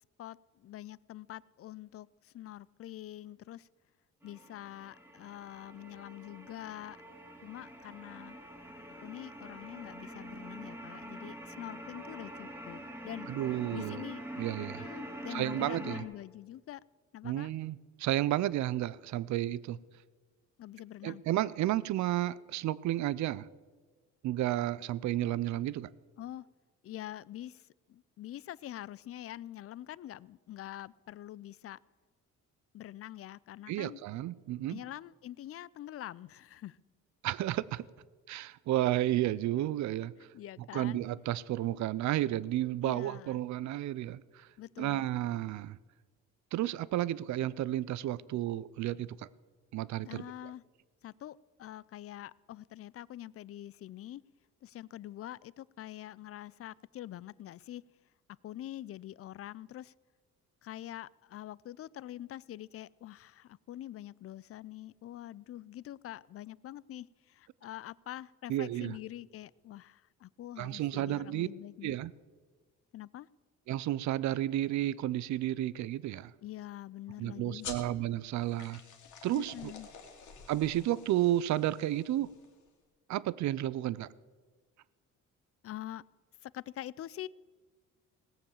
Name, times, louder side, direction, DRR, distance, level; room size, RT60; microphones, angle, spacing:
voice 1, 0.2-3.7 4.2-7.0 7.4-8.4 9.0-13.3 13.7-14.2 14.6-16.8 17.1-17.5 20.6-21.2 26.2-26.4 26.8-31.8 32.7-34.0 34.7-36.8 40.3-41.0 42.8-43.4 44.6-45.0 50.0-50.6 51.0-54.2 54.6-57.8 58.4-59.9 60.6-72.0 72.9-73.3 76.4-77.7 79.4-79.9 85.6-86.0 86.4-87.3, left 13 dB, 50° left, 0.4 m, -45 dB
sound 1, 4.2-16.0, right 1 dB, 5° right, 2.0 m, -45 dB
voice 2, 13.3-14.0 14.4-14.8 15.3-16.0 17.2-19.8 21.0-23.5 24.2-25.9 33.7-34.8 37.2-37.8 38.3-40.1 40.7-44.5 44.8-45.8 46.5-49.3 49.7-50.2 68.5-69.0 70.6-71.5 71.8-72.1 73.7-76.3 77.2-78.8 79.2-79.7 80.5-82.3 83.1-84.1, right 14 dB, 70° right, 0.5 m, -32 dB
sound 2, 77.6-82.7, left 6 dB, 75° left, 2.3 m, -49 dB
18.5 x 7.0 x 7.1 m
cardioid pair, 90°, 30 cm